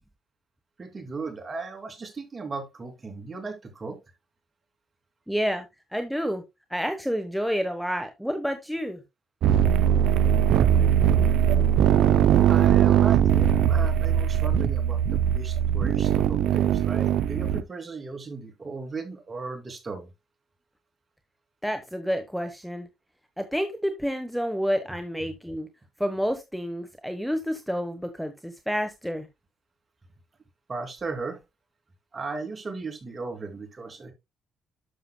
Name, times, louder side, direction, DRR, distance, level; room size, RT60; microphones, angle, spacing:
voice 1, 0.8-4.0 12.5-20.1 30.7-31.4 32.1-34.1, right 4 dB, 30° right, 2.8 m, -36 dB
voice 2, 5.3-5.7 5.9-6.4 6.7-9.0 21.6-22.9 23.4-25.7 26.0-29.3, equal, ahead, 1.1 m, -29 dB
sound 1, 9.4-17.6, right 9 dB, 80° right, 0.6 m, -20 dB
11.5 x 6.7 x 2.2 m
cardioid pair, 90°, 0 cm